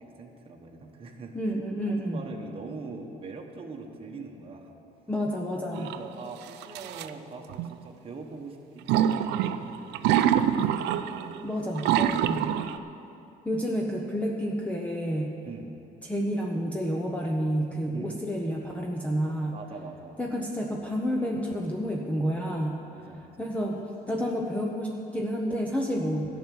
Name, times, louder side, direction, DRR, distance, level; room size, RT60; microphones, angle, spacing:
voice 1, 0.0-1.4 1.9-4.8 5.7-11.4 15.5-15.8 17.9-18.2 19.5-20.2 22.9-23.5, right 4 dB, 35° right, 0 dB, 1.3 m, -43 dB
voice 2, 1.3-2.2 5.1-5.9 11.4-12.5 13.4-15.3 16.0-19.5 20.2-26.3, equal, 10° left, -1 dB, 1.0 m, -30 dB
sound 1, 5.7-6.0 6.6-7.1 7.5-7.7 8.9-11.4 11.7-12.8, right 10 dB, 85° right, 0.5 m, -25 dB
12.5 x 6.0 x 9.1 m, 2.7 s
cardioid pair, 110°, 17 cm